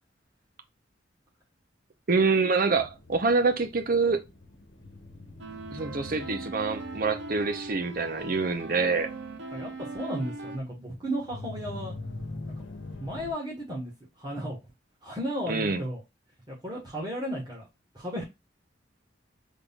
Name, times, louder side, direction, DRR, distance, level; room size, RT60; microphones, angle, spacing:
voice 1, 2.1-4.2 5.7-9.1 15.5-15.8, right 4 dB, 50° right, 0.7 m, -26 dB
sound 1, 2.7-13.3, left 2 dB, 80° left, 1.1 m, -44 dB
sound 2, 5.4-10.6, right 3 dB, 85° right, 0.7 m, -40 dB
voice 2, 9.5-11.9 13.0-13.9 14.2-14.6 15.0-16.0 16.5-17.7 17.9-18.2, equal, 25° right, 1.3 m, -34 dB
3.7 x 3.7 x 2.3 m
head